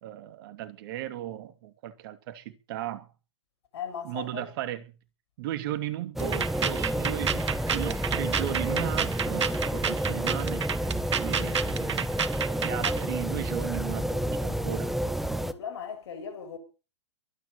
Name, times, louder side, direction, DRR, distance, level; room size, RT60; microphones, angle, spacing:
voice 1, 0.0-3.1 4.0-4.9 5.4-10.6 11.2-12.1 12.6-14.9, right 13 dB, 50° right, 2.7 m, -36 dB
voice 2, 3.7-4.5 12.7-13.0 15.3-16.6, left 7 dB, 65° left, 7.2 m, -38 dB
sound 1, 6.2-15.5, right 1 dB, ahead, 1.4 m, -30 dB
sound 2, 6.2-13.0, right 7 dB, 80° right, 1.5 m, -30 dB
Guitar, 6.8-10.0, right 7 dB, 20° right, 2.1 m, -47 dB
23.5 x 9.9 x 5.7 m
hypercardioid pair, 120°, 15 cm